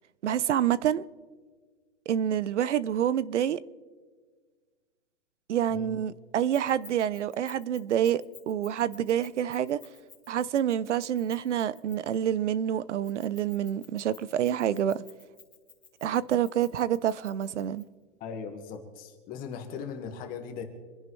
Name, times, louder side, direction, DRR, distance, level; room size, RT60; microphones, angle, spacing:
voice 1, 0.2-1.0 2.1-3.6 5.5-9.8 10.3-15.0 16.0-17.8, right 10 dB, 75° right, 0.8 m, -27 dB
Keys jangling, 6.5-12.2 13.0-17.8, left 5 dB, 5° left, 3.5 m, -53 dB
voice 2, 18.2-20.6, left 6 dB, 25° left, 1.8 m, -39 dB
26.5 x 10.5 x 3.3 m
hypercardioid pair, 150°, 36 cm